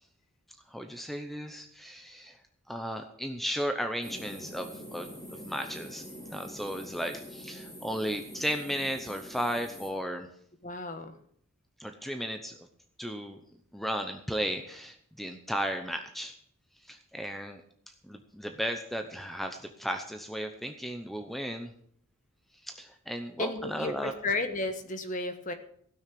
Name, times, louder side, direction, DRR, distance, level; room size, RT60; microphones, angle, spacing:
voice 1, 0.7-2.4 2.7-6.0 6.3-10.3 11.8-12.5 13.0-13.4 13.7-16.3 16.8-17.6 18.0-21.7 22.6-24.1, equal, ahead, 6 dB, 0.8 m, -35 dB
sound 1, 4.0-9.9, equal, 15° left, 3.2 m, -45 dB
voice 2, 10.6-11.1 23.4-25.5, left 2 dB, 35° left, 8 dB, 1.3 m, -33 dB
16.0 x 6.4 x 8.4 m, 0.63 s
head